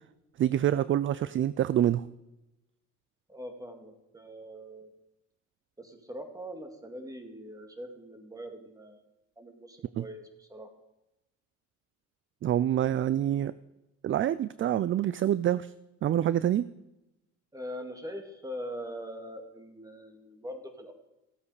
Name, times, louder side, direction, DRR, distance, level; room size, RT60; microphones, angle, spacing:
voice 1, 0.4-2.1 10.0-10.1 12.4-13.5 14.0-15.7 16.0-16.7, right 11 dB, 40° right, 17 dB, 0.4 m, -26 dB
voice 2, 3.3-4.9 5.8-9.0 9.4-10.7 17.5-20.9, equal, 10° right, 5 dB, 2.1 m, -42 dB
15.0 x 8.4 x 4.9 m, 0.96 s
cardioid pair, 85°, 32 cm